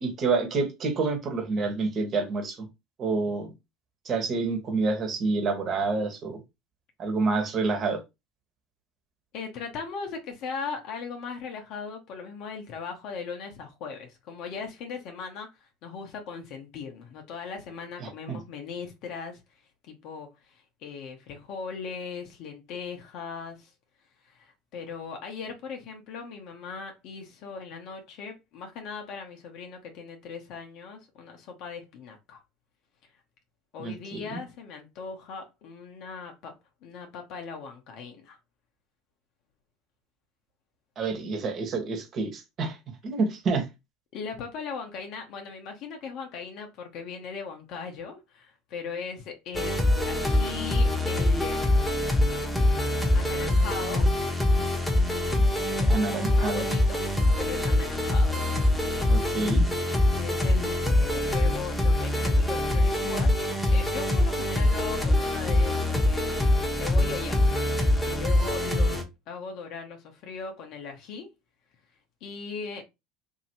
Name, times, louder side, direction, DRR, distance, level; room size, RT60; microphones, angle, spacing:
voice 1, 0.0-2.7 3.0-3.5 4.0-6.4 7.0-8.0 18.0-18.4 33.8-34.4 41.0-42.8 43.0-43.6 55.9-56.6 59.1-59.7, right 4 dB, 45° right, 1.2 m, -28 dB
voice 2, 9.3-19.4 19.8-23.7 24.2-32.4 33.7-36.5 36.8-38.4 44.1-51.7 53.1-54.1 55.8-57.0 57.4-58.4 60.2-63.4 63.7-66.3 66.7-67.5 67.8-71.3 72.2-72.8, left 5 dB, 60° left, 0.8 m, -39 dB
sound 1, 49.5-69.0, left 1 dB, 5° left, 1.0 m, -24 dB
2.9 x 2.8 x 2.8 m
hypercardioid pair, 75°, 0 cm